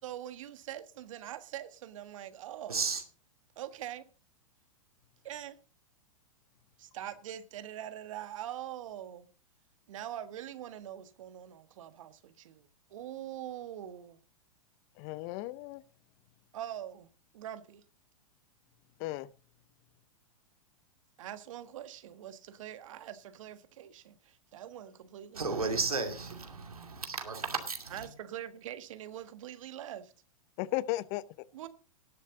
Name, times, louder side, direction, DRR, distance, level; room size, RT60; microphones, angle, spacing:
voice 1, 0.0-2.8 3.5-4.0 5.2-5.6 6.8-9.3 9.9-14.2 16.5-17.8 21.2-25.8 27.9-30.1 31.5-31.7, right 11 dB, 65° right, 1.5 m, -43 dB
voice 2, 2.7-3.0 25.3-28.1, right 4 dB, 85° right, 2.6 m, -34 dB
voice 3, 15.0-15.8 19.0-19.3 30.6-31.5, left 17 dB, 40° left, 0.7 m, -35 dB
19.0 x 7.4 x 3.9 m
hypercardioid pair, 105°, 18 cm